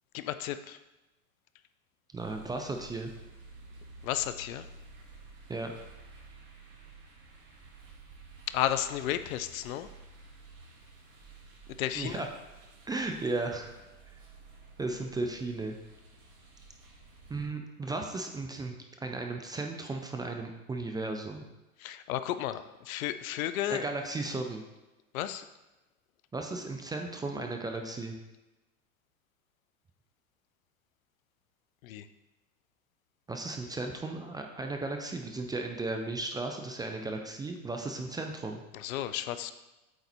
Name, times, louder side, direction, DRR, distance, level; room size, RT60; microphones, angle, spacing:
voice 1, 0.1-0.8 4.0-4.7 8.5-9.9 11.8-12.2 21.8-23.9 25.1-25.5 31.8-32.0 38.7-39.5, left 12 dB, 70° left, 12 dB, 0.6 m, -33 dB
voice 2, 2.1-3.1 5.5-5.7 12.0-12.3 12.9-13.7 14.8-15.8 17.3-18.7 19.0-21.4 23.7-24.6 26.3-28.1 33.3-38.6, right 2 dB, 10° right, 4 dB, 0.4 m, -35 dB
sound 1, 2.1-17.4, right 3 dB, 50° right, 2.4 m, -52 dB
8.3 x 4.0 x 4.3 m, 1.0 s
hypercardioid pair, 100°, 43 cm